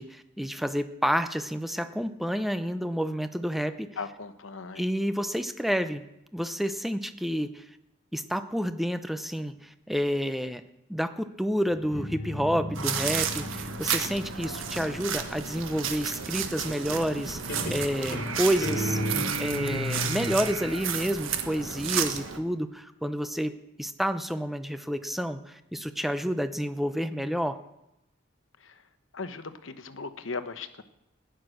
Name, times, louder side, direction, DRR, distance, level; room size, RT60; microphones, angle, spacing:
voice 1, 0.0-3.9 4.8-6.0 6.3-7.6 8.1-10.6 10.9-19.0 19.4-27.6, equal, ahead, 10 dB, 0.6 m, -29 dB
voice 2, 4.0-4.9 28.6-28.7 29.1-30.8, left 4 dB, 80° left, 10 dB, 1.0 m, -38 dB
Guitar, 11.7-15.3 16.9-17.2 17.5-20.4, left 1 dB, 45° left, 3.2 m, -34 dB
sound 1, 12.8-22.4, right 7 dB, 90° right, 1.3 m, -32 dB
15.5 x 10.5 x 6.4 m, 0.88 s
head